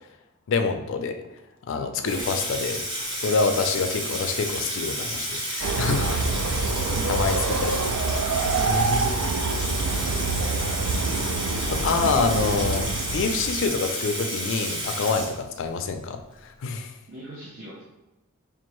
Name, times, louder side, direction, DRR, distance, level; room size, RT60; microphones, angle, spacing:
voice 1, 0.5-1.2 1.7-2.8 3.2-6.2 7.1-7.9 8.7-9.0 11.6-15.3 15.6-16.9, left 4 dB, 60° left, 7 dB, 0.4 m, -26 dB
Water tap faucet / Sink (filling or washing), 2.0-15.8, right 1 dB, 20° right, 0.8 m, -31 dB
voice 2, 2.0-3.2 5.9-6.2 6.5-7.8 8.4-10.6 15.0-15.1 17.1-17.8, right 2 dB, 55° right, -8 dB, 0.9 m, -41 dB
Train, 5.6-13.8, right 3 dB, 80° right, 0.4 m, -27 dB
5.2 x 2.4 x 3.0 m, 0.97 s
head